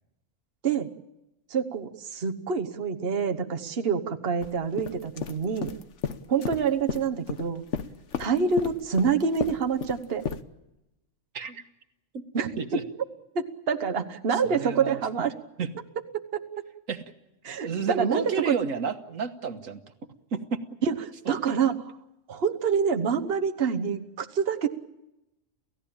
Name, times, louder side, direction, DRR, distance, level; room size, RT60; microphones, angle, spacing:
voice 1, 1.5-5.7 6.3-7.6 8.2-10.2 12.3-12.5 13.3-15.3 16.1-16.7 17.4-18.6 20.8-22.0 22.3-24.7, right 6 dB, 50° right, 6 dB, 1.4 m, -27 dB
sound 1, 4.4-4.5 4.8-7.5 7.7-10.4, left 6 dB, 65° left, 1.3 m, -32 dB
voice 2, 14.3-15.0 15.6-15.7 16.9-17.0 17.6-19.8 20.3-20.6, right 5 dB, 85° right, 8 dB, 1.7 m, -31 dB
29.0 x 16.0 x 8.7 m, 0.93 s
omnidirectional pair, 1.3 m